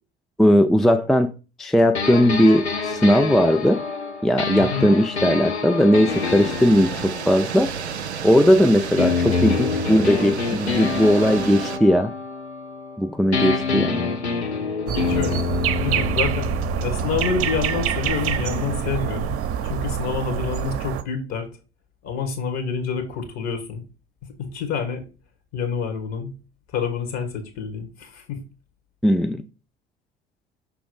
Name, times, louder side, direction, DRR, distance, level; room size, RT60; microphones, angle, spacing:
voice 1, 0.4-1.3 1.6-3.8 4.2-7.7 8.2-12.1 13.0-14.1 29.0-29.4, equal, ahead, 0.4 m, -18 dB
sound 1, 1.9-8.5 9.0-13.0 13.3-19.1, left 4 dB, 90° left, 0.7 m, -27 dB
voice 2, 4.6-4.9 14.9-16.5 16.8-19.4 19.6-21.5 22.0-23.8 24.4-25.1 25.5-26.3 26.7-28.4, left 6 dB, 50° left, 1.9 m, -28 dB
sound 2, 6.1-11.8, right 7 dB, 90° right, 0.5 m, -32 dB
sound 3, 14.9-21.0, right 9 dB, 45° right, 0.7 m, -26 dB
6.0 x 3.5 x 5.1 m
figure-of-eight pair, 60°, 32 cm